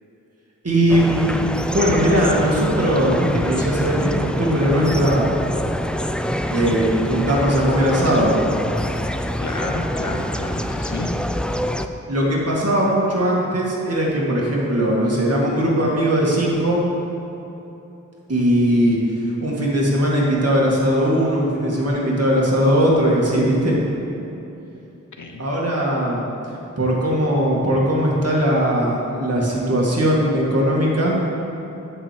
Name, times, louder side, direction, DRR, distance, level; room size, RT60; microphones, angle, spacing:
voice 1, 0.6-5.4 6.5-8.3 12.1-16.8 18.3-23.8 25.4-26.3 26.8-31.1, equal, 50° right, -4 dB, 2.2 m, -19 dB
sound 1, 0.9-11.9, equal, 5° left, 0.5 m, -25 dB
voice 2, 9.4-11.1 25.2-25.4, left 2 dB, 70° left, 2 dB, 1.0 m, -30 dB
11.5 x 4.5 x 7.6 m, 2.9 s
cardioid pair, 40°, 31 cm